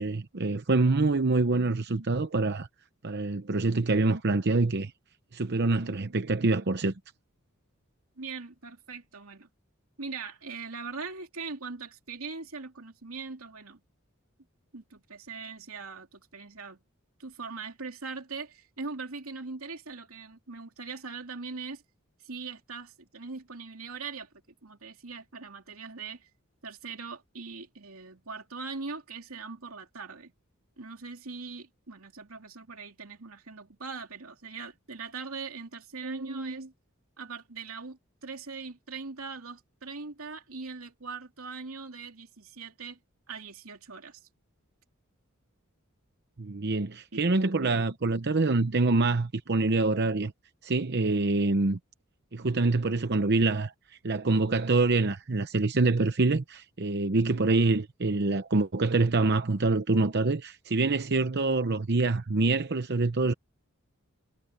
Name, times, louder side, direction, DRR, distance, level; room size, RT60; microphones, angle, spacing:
voice 1, 0.0-2.7 3.0-4.9 5.3-6.9 46.4-50.3 50.6-51.8 52.3-53.7 54.0-63.3, right 3 dB, 55° right, 0.8 m, -25 dB
voice 2, 8.2-9.5 10.0-13.8 14.7-16.8 17.2-21.8 22.2-24.3 24.6-26.3 26.6-30.3 30.8-36.7 37.2-43.0 43.3-44.2 47.1-47.2 47.6-47.8, right 4 dB, 85° right, 2.7 m, -41 dB
head